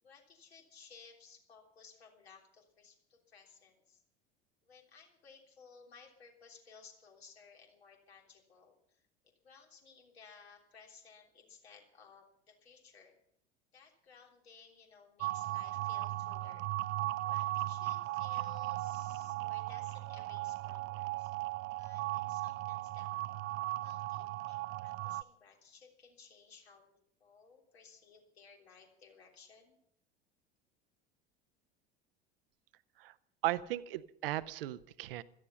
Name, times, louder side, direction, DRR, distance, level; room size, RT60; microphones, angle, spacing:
voice 1, 0.0-4.0 4.6-13.1 13.7-16.6 17.2-21.3 21.8-23.1 23.8-29.8, left 5 dB, 70° left, 1 dB, 3.4 m, -59 dB
sound 1, 15.2-25.2, right 17 dB, 40° right, 0.5 m, -37 dB
voice 2, 33.4-35.2, right 15 dB, 60° right, 16 dB, 0.9 m, -36 dB
16.5 x 14.0 x 5.7 m, 0.68 s
figure-of-eight pair, 70°, 32 cm